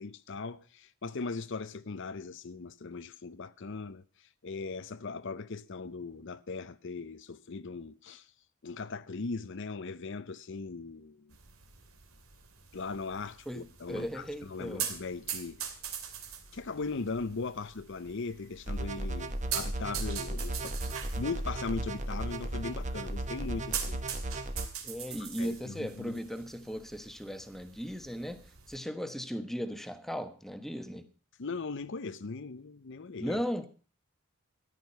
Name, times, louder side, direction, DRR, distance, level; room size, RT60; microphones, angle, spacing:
voice 1, 0.0-4.0 4.4-8.3 8.6-11.4 12.7-15.7 16.5-24.0 25.1-26.2 31.4-33.4, left 4 dB, 60° left, 0.7 m, -39 dB
sound 1, 11.3-28.8, right 8 dB, 85° right, 2.5 m, -43 dB
voice 2, 13.5-14.9 24.8-31.1 33.2-33.7, equal, ahead, 1.2 m, -37 dB
sound 2, 18.7-24.6, right 1 dB, 35° right, 1.2 m, -35 dB
14.0 x 11.0 x 5.4 m
head